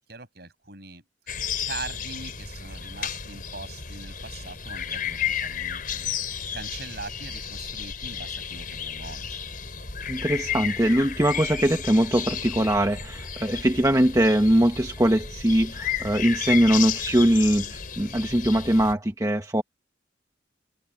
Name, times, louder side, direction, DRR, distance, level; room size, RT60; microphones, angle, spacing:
voice 1, 0.1-1.0 1.6-6.2 6.5-9.4, right 3 dB, 55° right, 7.8 m, -41 dB
sound 1, 1.3-18.9, left 8 dB, 50° left, 4.9 m, -33 dB
voice 2, 10.1-19.6, right 1 dB, 20° right, 1.2 m, -22 dB
head